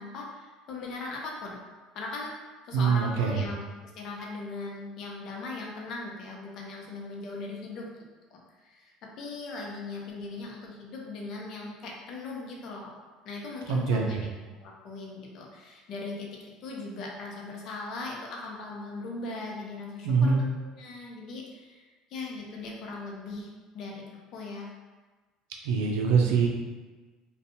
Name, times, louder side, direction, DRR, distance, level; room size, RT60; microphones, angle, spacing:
voice 1, 0.0-1.6 1.9-2.3 2.6-7.9 8.3-13.0 13.2-14.3 14.6-23.5 23.7-24.0 24.3-24.7, left 3 dB, 60° left, -2 dB, 0.6 m, -39 dB
voice 2, 2.7-3.4 13.7-14.2 20.0-20.4 25.6-26.5, right 5 dB, 80° right, 0 dB, 0.4 m, -24 dB
2.6 x 2.2 x 2.7 m, 1.3 s
supercardioid pair, 85°, 0 cm